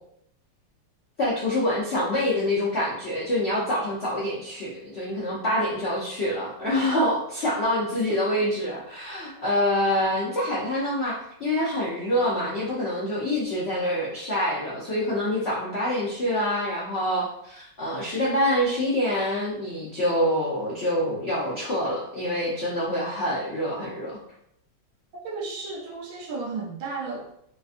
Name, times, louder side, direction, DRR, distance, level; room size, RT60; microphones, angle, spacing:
voice 1, 1.2-24.2, left 1 dB, 65° left, -7 dB, 0.6 m, -26 dB
voice 2, 25.2-27.3, right 3 dB, 65° right, -2 dB, 1.1 m, -33 dB
3.6 x 2.5 x 2.5 m, 0.73 s
omnidirectional pair, 2.1 m